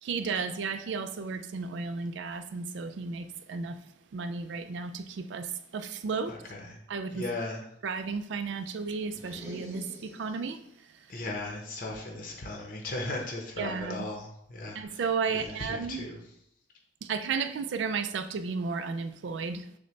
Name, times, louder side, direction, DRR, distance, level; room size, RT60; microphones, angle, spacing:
voice 1, 0.0-3.8 4.1-6.4 6.9-7.2 7.8-10.6 10.9-11.1 13.6-14.1 14.7-16.1 17.0-19.7, right 5 dB, 90° right, 10 dB, 0.4 m, -33 dB
voice 2, 6.3-6.8 7.1-7.6 11.1-15.0 15.4-16.2, left 2 dB, 50° left, 0 dB, 0.8 m, -37 dB
sound 1, 9.0-10.7, equal, 15° right, 0.6 m, -47 dB
6.4 x 2.2 x 3.2 m, 0.70 s
head